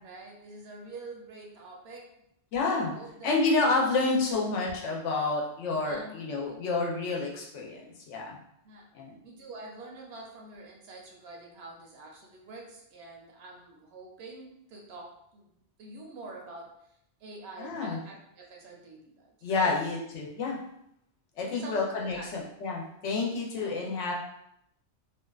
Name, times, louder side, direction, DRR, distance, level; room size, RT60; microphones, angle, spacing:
voice 1, 0.0-2.1 2.7-3.3 3.8-4.0 5.8-6.6 8.6-8.9 9.2-15.5 15.8-16.7 17.2-19.7 21.4-22.3 23.6-23.9, right 2 dB, 70° right, -1 dB, 0.8 m, -46 dB
voice 2, 2.5-2.9 3.2-8.4 8.9-9.1 17.6-18.0 19.4-20.6 21.4-24.1, left 3 dB, 80° left, -1 dB, 0.9 m, -29 dB
2.5 x 2.2 x 2.2 m, 0.77 s
omnidirectional pair, 1.2 m